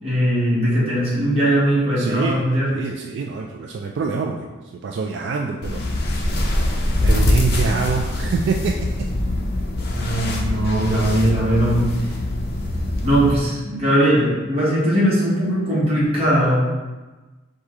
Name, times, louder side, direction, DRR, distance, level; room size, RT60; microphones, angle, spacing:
voice 1, 0.0-2.7 9.9-11.9 13.0-16.7, equal, 30° right, -8 dB, 1.4 m, -19 dB
voice 2, 2.0-5.8 7.0-9.1, right 5 dB, 65° right, 2 dB, 0.3 m, -26 dB
sound 1, 5.6-13.4, left 1 dB, 55° left, 0.6 m, -23 dB
4.7 x 2.7 x 3.6 m, 1.2 s
head